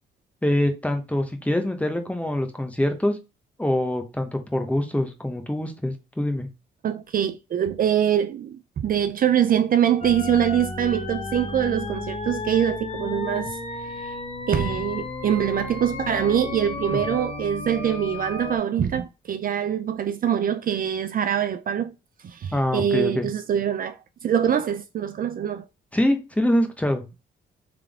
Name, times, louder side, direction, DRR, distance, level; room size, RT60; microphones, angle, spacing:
voice 1, 0.4-3.2 3.6-6.5 16.9-17.0 22.5-23.3 25.9-27.1, left 1 dB, 5° left, 1.1 m, -24 dB
voice 2, 6.8-13.6 13.8-14.1 14.5-21.9 22.2-25.6, right 9 dB, 45° right, 0.4 m, -24 dB
sound 1, 10.0-18.6, left 3 dB, 30° left, 1.0 m, -33 dB
3.7 x 3.3 x 3.5 m
cardioid pair, 90°, 20 cm